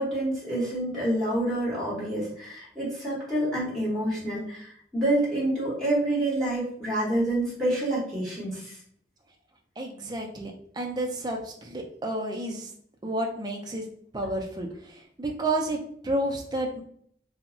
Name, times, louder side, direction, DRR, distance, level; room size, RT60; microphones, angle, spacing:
voice 1, 0.0-8.8, right 1 dB, ahead, -7 dB, 1.0 m, -27 dB
voice 2, 9.8-12.7 13.0-13.9 14.1-16.8, right 1 dB, 25° right, 2 dB, 0.4 m, -31 dB
2.2 x 2.0 x 3.7 m, 0.66 s
head